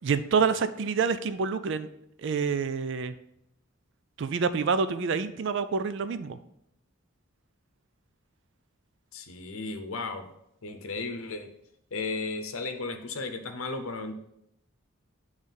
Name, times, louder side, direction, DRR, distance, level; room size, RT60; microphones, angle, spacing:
voice 1, 0.0-1.9 2.2-3.1 4.2-6.4, right 5 dB, 60° right, 12 dB, 0.4 m, -27 dB
voice 2, 9.1-10.3 10.6-11.5 11.9-14.1, left 3 dB, 85° left, 6 dB, 0.7 m, -34 dB
9.0 x 3.3 x 5.4 m, 0.77 s
head